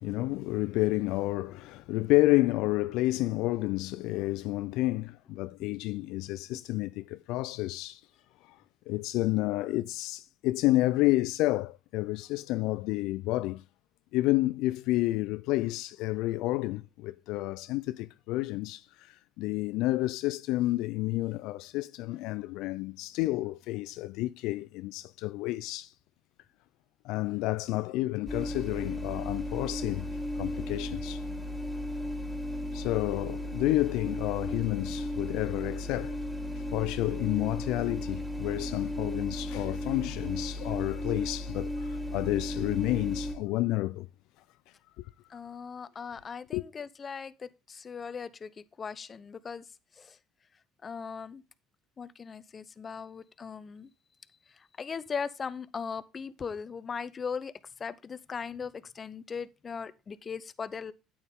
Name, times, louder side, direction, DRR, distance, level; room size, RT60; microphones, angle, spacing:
voice 1, 0.0-8.0 8.4-8.6 8.9-13.6 14.1-25.9 27.0-30.1 30.4-31.2 32.7-36.3 36.6-44.1 45.0-45.4 46.5-46.6, left 18 dB, 75° left, 0.4 m, -30 dB
sound 1, 28.3-43.3, left 1 dB, ahead, 3.3 m, -35 dB
voice 2, 45.3-48.5 48.8-49.6 50.0-50.2 50.8-51.4 52.0-53.9 54.8-57.5 57.8-60.9, left 6 dB, 35° left, 0.8 m, -38 dB
9.1 x 8.7 x 3.6 m
supercardioid pair, 75°, 0 cm